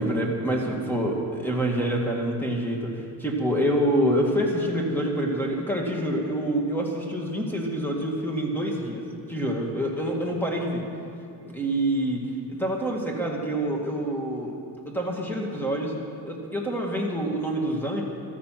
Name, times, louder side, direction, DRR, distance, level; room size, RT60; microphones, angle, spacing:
voice 1, 0.0-10.9 11.4-14.5 14.9-16.0 16.2-18.0, right 1 dB, 5° left, 0 dB, 2.0 m, -27 dB
14.0 x 13.5 x 5.9 m, 2.4 s
cardioid pair, 150°, 43 cm